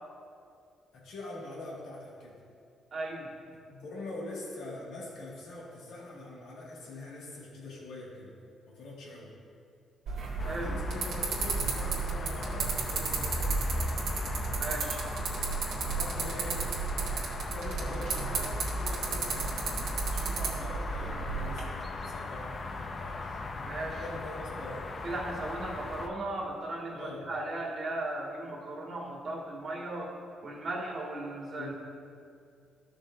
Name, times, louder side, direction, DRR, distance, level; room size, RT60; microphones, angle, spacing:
voice 1, 0.9-2.4 3.7-8.4 8.7-9.3 10.4-13.8 15.8-16.6 17.3-23.4 24.0-24.9 26.9-27.3 31.5-31.7, left 2 dB, 80° left, -5 dB, 2.3 m, -43 dB
voice 2, 2.9-3.3 10.4-10.7 14.6-15.0 23.6-24.0 25.0-30.1 30.4-31.7, right 2 dB, 50° right, -4 dB, 2.3 m, -36 dB
sound 1, 10.1-21.6, right 4 dB, 80° right, 2.1 m, -33 dB
sound 2, 10.4-26.1, left 3 dB, 40° left, 0.7 m, -39 dB
13.5 x 6.4 x 2.8 m, 2.3 s
cardioid pair, 90°, 0 cm